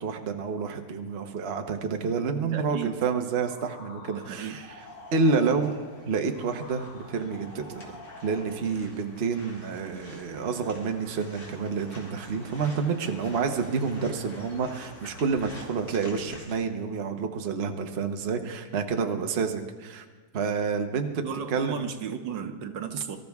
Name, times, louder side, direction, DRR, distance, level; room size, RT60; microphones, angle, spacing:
voice 1, 0.0-4.7 5.1-5.7 6.0-20.0 20.3-21.9, right 5 dB, 40° right, 5 dB, 1.0 m, -29 dB
voice 2, 2.4-2.9 4.1-4.6 21.2-23.2, right 7 dB, 80° right, 7 dB, 1.6 m, -34 dB
sound 1, 3.4-8.9, left 3 dB, 80° left, 2.2 m, -47 dB
sound 2, 4.3-16.5, left 1 dB, 40° left, 2.9 m, -48 dB
23.5 x 13.5 x 3.5 m, 1.4 s
omnidirectional pair, 2.0 m